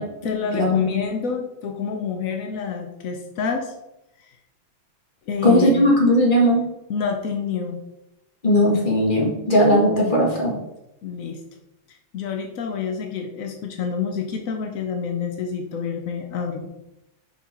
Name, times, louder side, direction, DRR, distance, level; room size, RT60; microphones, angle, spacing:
voice 1, 0.0-3.7 5.3-5.8 6.9-7.8 9.9-10.1 11.0-11.4 12.1-16.7, left 6 dB, 85° left, 3 dB, 0.7 m, -28 dB
voice 2, 0.5-0.9 5.4-6.7 8.4-10.5, equal, 25° left, -2 dB, 1.5 m, -18 dB
5.4 x 4.8 x 4.3 m, 0.90 s
omnidirectional pair, 2.3 m